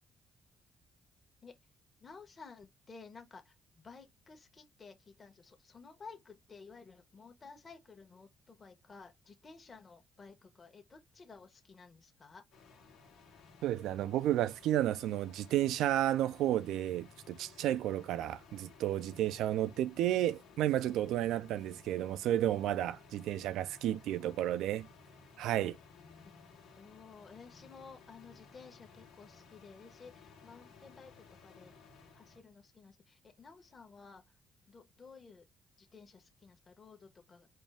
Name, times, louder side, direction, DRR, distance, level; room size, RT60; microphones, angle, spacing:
voice 1, 2.0-12.4 26.2-26.3 26.8-31.7 32.1-34.4 34.7-35.5 35.8-37.5, left 4 dB, 35° left, 1.0 m, -54 dB
sound 1, 12.5-32.4, left 4 dB, 85° left, 1.2 m, -58 dB
voice 2, 13.6-24.9 25.4-25.8, right 12 dB, 85° right, 0.4 m, -32 dB
4.4 x 2.5 x 3.4 m
cardioid pair, 90°, 0 cm